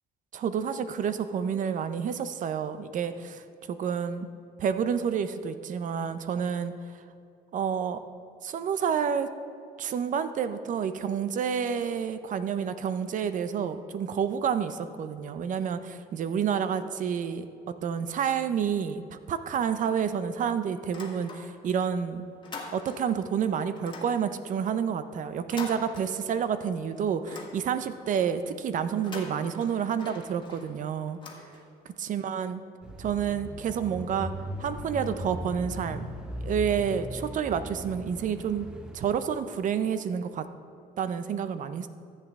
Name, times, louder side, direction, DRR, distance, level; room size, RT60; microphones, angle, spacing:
voice 1, 0.3-4.3 4.6-6.7 7.5-8.0 8.4-9.3 9.8-17.5 17.8-22.2 22.7-31.2 32.0-32.6 33.0-34.3 34.6-36.1 36.4-38.7 38.9-40.4 41.0-41.9, right 7 dB, 50° right, 11 dB, 0.6 m, -29 dB
sound 1, 20.8-21.8 22.1-23.3 23.8-26.6 26.9-28.1 28.9-32.0, left 3 dB, 30° left, 1.6 m, -44 dB
Bicycle / Mechanisms, 32.8-39.0, equal, 5° right, 0.9 m, -38 dB
14.0 x 8.1 x 3.6 m, 2.5 s
cardioid pair, 110°, 17 cm